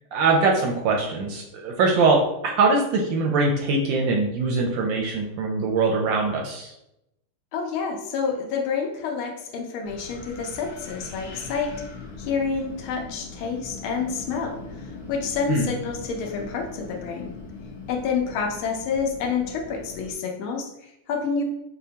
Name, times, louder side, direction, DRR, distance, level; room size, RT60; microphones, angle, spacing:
voice 1, 0.1-2.2 2.6-6.7 15.5-15.7, right 3 dB, 75° right, 1 dB, 1.1 m, -22 dB
voice 2, 7.5-11.7 12.2-14.6 15.1-17.3 17.9-21.4, left 5 dB, 75° left, 2 dB, 1.4 m, -28 dB
Wind, 9.9-20.1, left 3 dB, 60° left, 1.4 m, -40 dB
5.4 x 2.1 x 2.8 m, 0.83 s
omnidirectional pair, 2.3 m